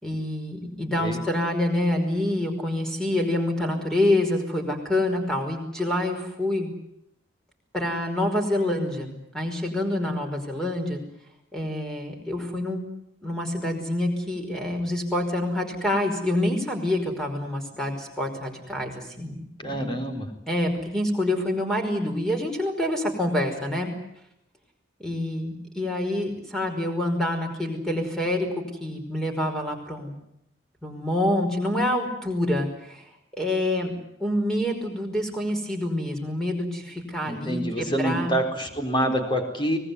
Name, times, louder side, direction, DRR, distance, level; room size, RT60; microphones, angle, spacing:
voice 1, 0.0-6.7 7.7-11.0 11.5-12.8 13.2-20.0 20.5-23.9 25.0-30.2 30.8-33.1 33.4-33.9 34.2-38.4, left 1 dB, 5° left, 3 dB, 5.2 m, -27 dB
voice 2, 19.6-20.3 37.3-39.8, right 1 dB, 25° left, 4 dB, 4.1 m, -26 dB
25.0 x 19.5 x 9.7 m, 0.77 s
head